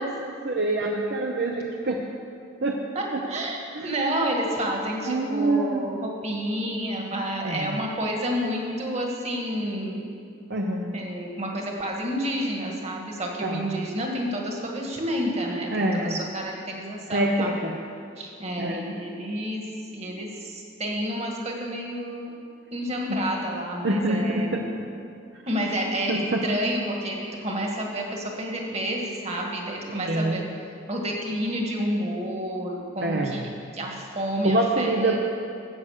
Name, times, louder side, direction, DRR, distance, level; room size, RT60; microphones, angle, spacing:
voice 1, 0.0-2.0 2.6-2.8 3.1-3.2 3.7-3.9 5.1-5.9 7.4-7.7 10.5-10.9 13.4-13.8 15.7-16.2 17.1-17.7 18.6-18.9 23.1-23.2 23.8-24.6 26.1-26.4 29.9-30.5 33.0-33.4 34.4-35.2, right 2 dB, 60° right, 0 dB, 0.8 m, -26 dB
voice 2, 2.9-3.6 3.8-10.0 10.9-17.5 18.2-19.6 19.9-22.3 22.7-24.7 25.5-30.4 30.9-35.2, equal, 35° right, 0 dB, 1.9 m, -29 dB
13.0 x 8.5 x 6.7 m, 2.5 s
head